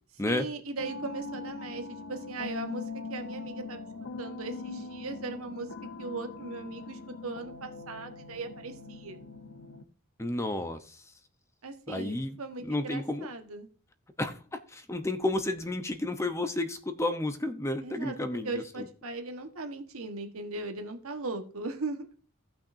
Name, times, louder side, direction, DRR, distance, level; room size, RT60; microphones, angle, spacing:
voice 1, 0.2-3.9 4.2-5.7 6.0-9.2 11.6-13.7 17.8-18.1 18.4-22.1, right 3 dB, 85° right, 6 dB, 1.3 m, -38 dB
sound 1, 0.8-9.8, left 3 dB, 60° left, 0.8 m, -41 dB
voice 2, 10.2-11.0 11.9-13.3 14.2-18.9, left 2 dB, 15° left, 8 dB, 0.7 m, -32 dB
16.5 x 5.9 x 2.6 m, 0.42 s
head